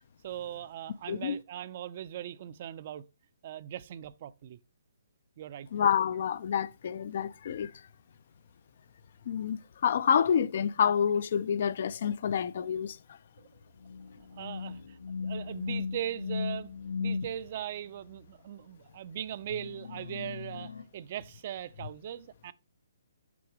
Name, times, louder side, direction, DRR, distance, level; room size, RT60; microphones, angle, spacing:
voice 1, 0.2-3.1 3.4-4.6 5.4-5.7 13.4-13.5 14.2-16.7 17.0-22.5, right 10 dB, 45° right, 0.5 m, -40 dB
voice 2, 5.7-7.7 9.3-13.0, left 8 dB, 55° left, 0.4 m, -28 dB
sound 1, 13.8-17.3 19.5-20.8, left 5 dB, 85° left, 0.8 m, -37 dB
7.1 x 6.1 x 2.9 m
hypercardioid pair, 150°, 0 cm